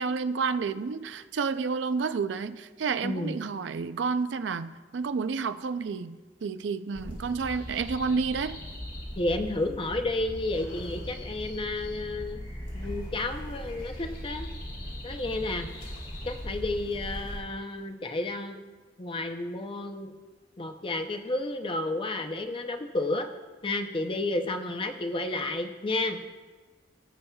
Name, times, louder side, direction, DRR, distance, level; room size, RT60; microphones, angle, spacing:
voice 1, 0.0-8.6, right 5 dB, 80° right, 11 dB, 0.4 m, -30 dB
voice 2, 3.0-3.4 9.2-12.4 12.7-14.5 15.0-15.7 16.2-18.6 19.0-20.1 20.6-23.3 23.6-26.2, left 2 dB, 30° left, 7 dB, 0.6 m, -31 dB
sound 1, 6.9-17.4, equal, 50° left, 2.4 m, -39 dB
21.0 x 7.1 x 2.3 m, 1.3 s
head